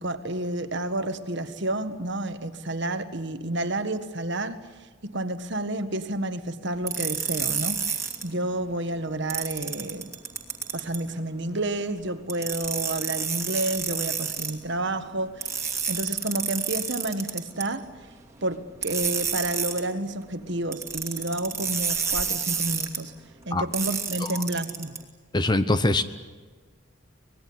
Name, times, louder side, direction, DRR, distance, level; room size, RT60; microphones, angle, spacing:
voice 1, 0.0-4.6 5.0-10.1 10.7-17.9 18.4-23.1 23.5-24.9, right 1 dB, 55° right, 1.6 m, -30 dB
sound 1, 6.9-8.2 9.3-11.0 12.3-14.5 15.4-17.6 18.8-19.8 20.7-23.0 23.7-25.0, right 6 dB, 15° right, 2.6 m, -29 dB
voice 2, 25.3-26.0, left 2 dB, 20° left, 0.9 m, -23 dB
25.0 x 20.5 x 9.6 m
head